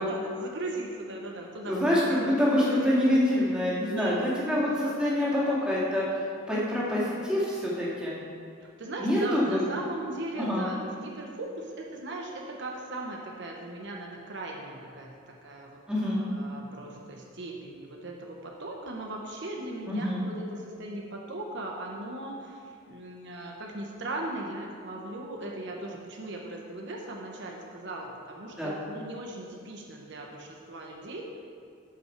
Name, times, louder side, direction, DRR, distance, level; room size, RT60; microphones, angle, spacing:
voice 1, 0.0-1.8 2.0-3.2 3.9-4.8 8.6-15.1 15.4-31.2, right 2 dB, 60° right, 0 dB, 1.0 m, -38 dB
voice 2, 1.6-6.0 6.5-8.2 9.0-9.6 10.4-10.6 15.9-16.2 19.9-20.2 28.6-28.7, left 1 dB, 5° right, -8 dB, 2.3 m, -26 dB
13.5 x 5.7 x 4.6 m, 2.3 s
head